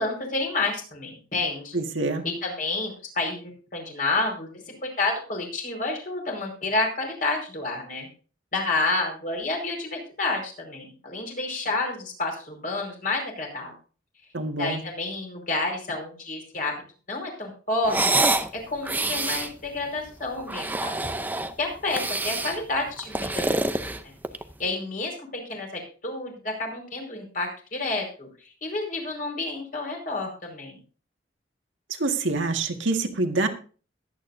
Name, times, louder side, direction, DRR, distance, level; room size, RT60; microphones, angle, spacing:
voice 1, 0.0-1.8 2.2-8.1 8.5-13.7 14.6-16.8 17.1-18.0 18.7-21.0 21.6-23.7 24.0-24.1 24.6-30.8, left 2 dB, 45° left, 1 dB, 5.0 m, -30 dB
voice 2, 1.7-2.3 14.3-14.8 32.0-33.5, right 3 dB, 85° right, 5 dB, 1.8 m, -26 dB
sound 1, 17.8-18.5 18.8-19.5 20.4-21.5 21.9-22.6 23.0-24.5, right 2 dB, 10° right, 0.6 m, -26 dB
22.0 x 9.0 x 2.7 m, 0.38 s
head